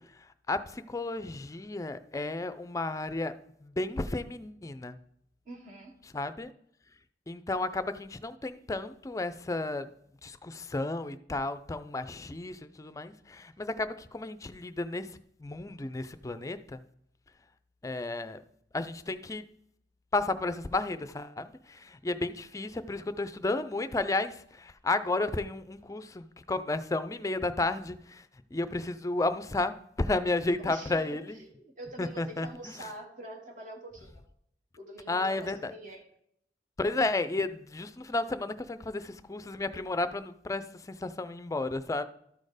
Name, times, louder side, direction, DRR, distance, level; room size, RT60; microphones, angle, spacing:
voice 1, 0.5-3.3 3.6-5.0 6.1-6.5 7.3-9.9 10.2-16.8 17.8-18.4 18.7-19.4 20.1-31.4 32.0-32.9 35.1-35.7 36.8-42.0, left 2 dB, 20° left, 11 dB, 0.4 m, -32 dB
voice 2, 5.4-5.9 30.6-34.2 34.8-36.0, right 1 dB, 45° right, 2 dB, 1.3 m, -45 dB
13.0 x 4.3 x 4.9 m, 0.73 s
head